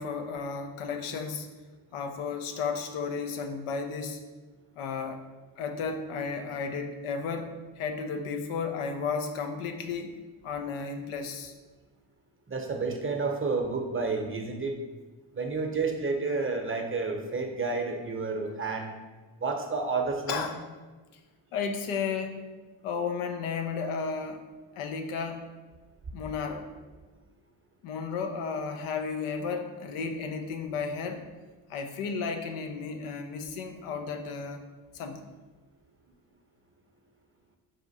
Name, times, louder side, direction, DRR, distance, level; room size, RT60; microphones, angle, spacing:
voice 1, 0.0-1.5 1.9-4.2 4.8-5.2 5.6-10.1 10.4-11.5 20.3-20.6 21.5-22.5 22.8-24.4 24.8-25.4 26.1-26.7 27.8-31.2 31.7-34.6 34.9-35.3, left 5 dB, 85° left, 5 dB, 0.6 m, -33 dB
voice 2, 12.5-14.7 15.3-18.9 19.4-20.5, right 4 dB, 25° right, 3 dB, 0.7 m, -30 dB
4.2 x 2.4 x 4.0 m, 1.2 s
supercardioid pair, 40°, 49 cm